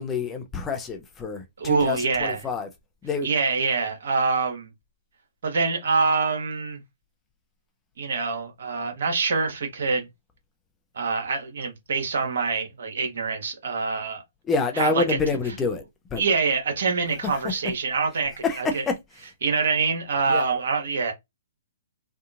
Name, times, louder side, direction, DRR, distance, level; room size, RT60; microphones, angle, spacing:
voice 1, 0.0-2.7 3.0-3.3 14.5-15.8 16.1-16.2 18.4-18.6 18.9-19.0 20.3-20.4, left 4 dB, 15° left, 0.6 m, -27 dB
voice 2, 1.6-2.5 3.2-4.7 5.4-6.8 8.0-10.1 10.9-14.2 14.7-15.2 15.4-15.5 16.2-18.8 19.4-21.1, right 4 dB, 60° right, 1.1 m, -25 dB
2.8 x 2.4 x 2.5 m
figure-of-eight pair, 125°, 0 cm